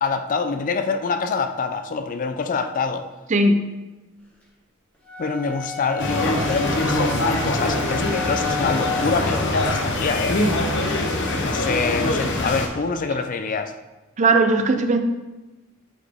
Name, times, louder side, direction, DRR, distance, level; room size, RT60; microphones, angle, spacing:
voice 1, 0.0-3.1 5.2-10.4 11.4-13.8, left 4 dB, 40° left, 8 dB, 0.4 m, -25 dB
sound 1, 5.0-9.3, left 3 dB, 5° left, 1.1 m, -34 dB
sound 2, 6.0-12.7, left 1 dB, 60° left, 0.8 m, -23 dB
voice 2, 14.2-15.0, right 2 dB, 35° right, 7 dB, 0.5 m, -17 dB
8.1 x 4.1 x 3.5 m, 1.1 s
head